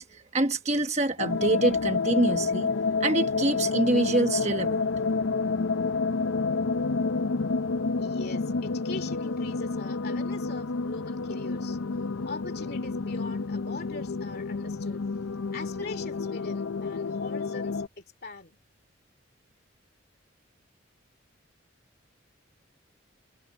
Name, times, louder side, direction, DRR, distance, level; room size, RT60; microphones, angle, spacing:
voice 1, 0.0-2.7 3.0-5.1, right 2 dB, 35° right, 1.2 m, -26 dB
sound 1, 1.2-17.9, left 4 dB, 85° left, 0.6 m, -29 dB
voice 2, 8.0-11.8 12.2-15.0 15.5-18.6, left 3 dB, 50° left, 2.8 m, -42 dB
head